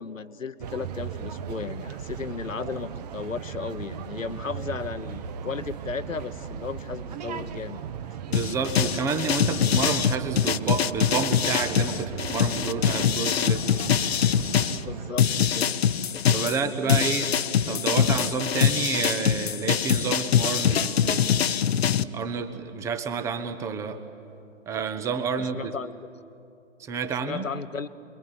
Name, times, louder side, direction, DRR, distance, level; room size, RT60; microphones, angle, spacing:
voice 1, 0.0-7.8 14.8-15.8 16.1-16.9 25.4-26.0 27.2-27.9, left 5 dB, 80° left, 14 dB, 1.1 m, -35 dB
sound 1, 0.6-15.1, right 7 dB, 30° right, 1.0 m, -37 dB
voice 2, 8.2-13.6 16.3-17.3 17.7-21.2 22.1-24.0 24.7-25.7 26.8-27.5, right 5 dB, 10° right, 9 dB, 0.8 m, -29 dB
sound 2, 8.3-14.8 15.2-22.0, left 8 dB, 50° left, 0.8 m, -23 dB
27.0 x 22.0 x 10.0 m, 2.7 s
figure-of-eight pair, 130°, 38 cm